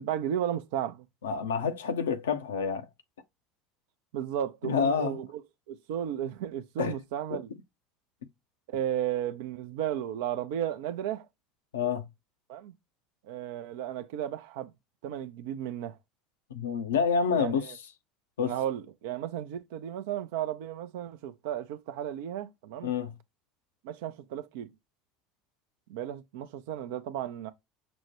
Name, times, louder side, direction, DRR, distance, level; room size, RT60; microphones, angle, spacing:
voice 1, 0.0-1.0 4.1-5.4 5.7-7.5 8.7-11.3 12.5-12.7 13.2-14.7 15.0-16.0 17.3-17.7 18.4-22.9 23.8-24.7 25.9-27.5, right 10 dB, 65° right, 0.5 m, -34 dB
voice 2, 1.2-2.9 4.6-5.2 6.8-6.9 7.3-7.4 11.7-12.0 16.5-17.7 18.4-18.5 22.8-23.1, left 6 dB, 75° left, 0.6 m, -28 dB
6.1 x 2.2 x 2.9 m
figure-of-eight pair, 70°, 0 cm